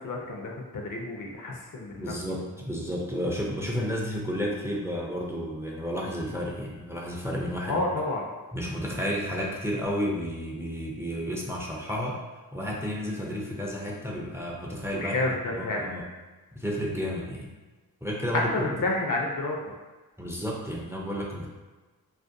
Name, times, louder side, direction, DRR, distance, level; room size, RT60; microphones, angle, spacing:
voice 1, 0.0-2.1 7.7-8.2 14.9-15.9 18.5-19.7, left 2 dB, 60° left, 0 dB, 0.6 m, -30 dB
voice 2, 2.0-7.8 8.5-12.2 12.5-16.1 16.5-17.5 18.0-18.7 20.2-21.6, equal, 5° right, -2 dB, 0.4 m, -32 dB
2.4 x 2.1 x 2.5 m, 1.2 s
cardioid pair, 55°, 37 cm